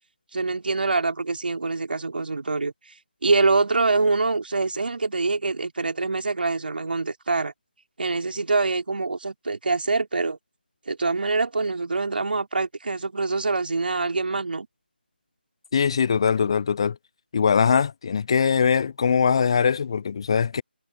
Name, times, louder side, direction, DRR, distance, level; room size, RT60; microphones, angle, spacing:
voice 1, 0.3-2.7 3.2-7.5 8.0-10.4 10.9-14.7, right 3 dB, 60° right, 3.1 m, -25 dB
voice 2, 15.7-17.0 17.3-20.6, left 6 dB, 30° left, 0.4 m, -21 dB
figure-of-eight pair, 165°, 6 cm